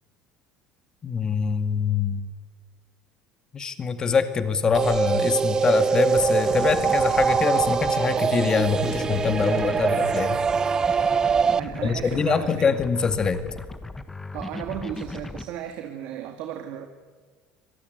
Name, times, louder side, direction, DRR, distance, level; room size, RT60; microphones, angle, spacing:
voice 1, 1.0-2.3 3.5-10.4 11.8-13.4, left 5 dB, 25° left, 10 dB, 2.0 m, -24 dB
sound 1, 4.6-5.0 6.2-8.0 8.7-15.4, left 3 dB, 10° left, 1.4 m, -37 dB
sound 2, 4.7-11.6, right 6 dB, 25° right, 0.7 m, -23 dB
voice 2, 11.6-12.7 14.3-16.9, right 10 dB, 60° right, 6 dB, 2.1 m, -34 dB
25.0 x 19.0 x 9.4 m, 1.4 s
supercardioid pair, 125°, 3 cm